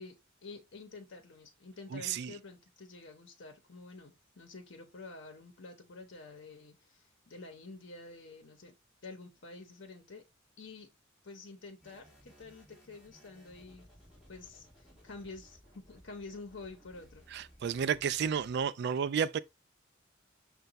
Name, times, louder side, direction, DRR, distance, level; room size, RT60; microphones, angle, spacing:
voice 1, 0.0-8.7 9.0-10.2 10.6-10.9 11.2-13.9 14.3-17.2, left 3 dB, 65° left, 0.8 m, -49 dB
voice 2, 1.9-2.3 17.3-19.4, right 7 dB, 55° right, 0.3 m, -32 dB
sound 1, 11.8-18.6, equal, 5° right, 1.5 m, -60 dB
5.6 x 2.3 x 3.9 m
head